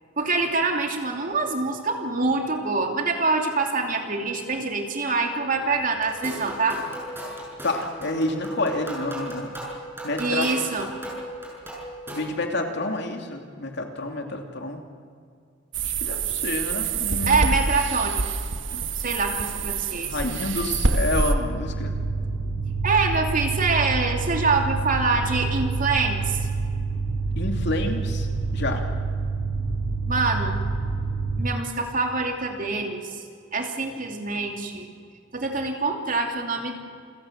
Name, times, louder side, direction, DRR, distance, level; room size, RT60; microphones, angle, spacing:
voice 1, 0.2-6.8 10.2-10.9 17.3-18.3 19.0-20.2 22.8-26.4 30.1-30.6 31.4-33.2 33.5-34.9 35.3-36.7, right 3 dB, 45° right, 3 dB, 2.9 m, -25 dB
sound 1, 6.0-12.4, equal, 10° right, 7.2 m, -37 dB
voice 2, 7.6-9.5 10.0-10.5 12.1-14.8 15.8-17.4 20.1-21.9 27.4-28.8, left 2 dB, 60° left, 4 dB, 2.7 m, -29 dB
sound 2, 15.7-21.3, right 4 dB, 65° right, 1.4 m, -26 dB
sound 3, 21.4-31.4, right 4 dB, 85° right, 3.2 m, -27 dB
28.5 x 16.5 x 7.5 m, 2.3 s
head